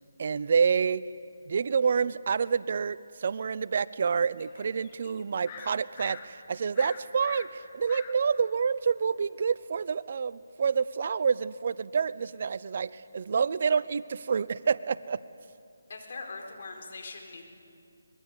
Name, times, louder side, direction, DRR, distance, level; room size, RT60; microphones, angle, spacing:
voice 1, 0.2-1.1 1.5-15.2, right 6 dB, 50° right, 17 dB, 0.7 m, -28 dB
sound 1, 4.4-6.3 6.7-8.1 8.6-8.7, left 7 dB, 25° left, 1.7 m, -45 dB
voice 2, 15.9-17.4, left 3 dB, 55° left, 2 dB, 4.8 m, -41 dB
24.5 x 21.5 x 8.3 m, 2.4 s
figure-of-eight pair, 155°, 0 cm